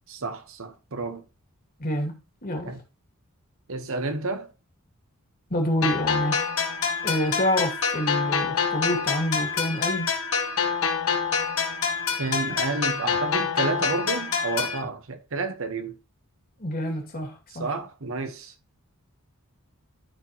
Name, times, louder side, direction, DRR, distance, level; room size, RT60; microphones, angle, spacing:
voice 1, 0.1-1.3 2.6-2.8 3.7-4.5 12.2-16.0 17.5-18.5, right 3 dB, 65° right, 1.1 m, -30 dB
voice 2, 1.8-2.7 5.5-6.5 7.0-10.1 16.6-17.7, equal, 40° left, 2.3 m, -27 dB
sound 1, 5.8-14.8, left 6 dB, 70° left, 1.6 m, -26 dB
13.0 x 4.4 x 2.9 m
head